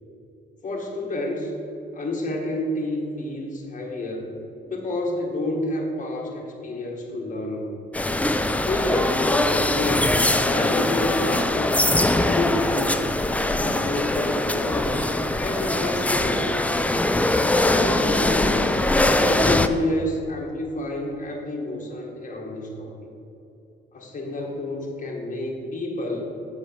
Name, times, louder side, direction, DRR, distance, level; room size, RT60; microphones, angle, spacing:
voice 1, 0.6-1.5 1.9-4.3 4.7-7.8 8.5-10.1 10.4-13.1 13.5-15.0 15.4-16.5 17.6-18.8 19.1-22.9 23.9-26.3, left 1 dB, 40° left, 0 dB, 1.6 m, -29 dB
sound 1, 7.9-19.7, left 1 dB, 5° left, 0.4 m, -22 dB
7.6 x 4.9 x 5.7 m, 2.9 s
cardioid pair, 90°, 20 cm